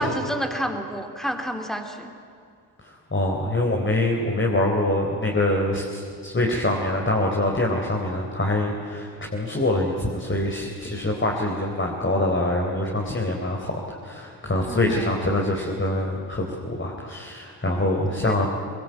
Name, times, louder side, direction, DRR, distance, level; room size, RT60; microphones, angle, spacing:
voice 1, 0.0-2.1 14.7-15.2 18.2-18.5, equal, ahead, 4 dB, 3.8 m, -29 dB
voice 2, 2.8-18.5, left 1 dB, 25° left, 0 dB, 4.1 m, -25 dB
24.5 x 21.5 x 9.4 m, 2.3 s
hypercardioid pair, 40°, 44 cm